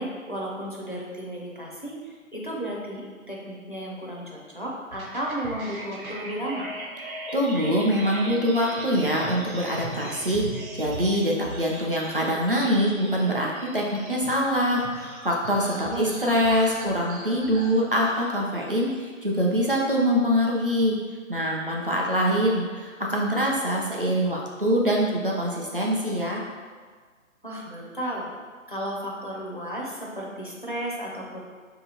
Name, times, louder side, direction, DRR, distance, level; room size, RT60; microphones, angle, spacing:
voice 1, 0.0-6.7 12.0-12.3 15.7-16.8 27.4-28.3 28.7-31.4, right 1 dB, 40° left, -4 dB, 0.4 m, -34 dB
sound 1, 4.9-19.0, right 1 dB, 90° right, 0.9 m, -39 dB
voice 2, 7.3-10.4 10.7-21.0 21.3-26.4, equal, 45° right, -2 dB, 0.4 m, -24 dB
3.0 x 2.8 x 4.0 m, 1.5 s
hypercardioid pair, 175°, 41 cm